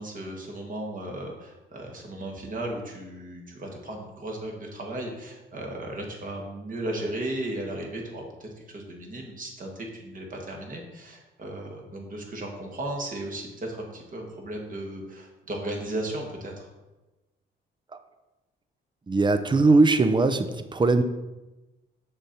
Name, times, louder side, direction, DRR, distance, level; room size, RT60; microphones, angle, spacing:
voice 1, 0.0-16.7, right 1 dB, 45° right, 0 dB, 2.0 m, -35 dB
voice 2, 19.1-21.0, right 3 dB, 25° right, 9 dB, 0.6 m, -20 dB
6.9 x 5.4 x 4.4 m, 1.1 s
cardioid pair, 90°, 20 cm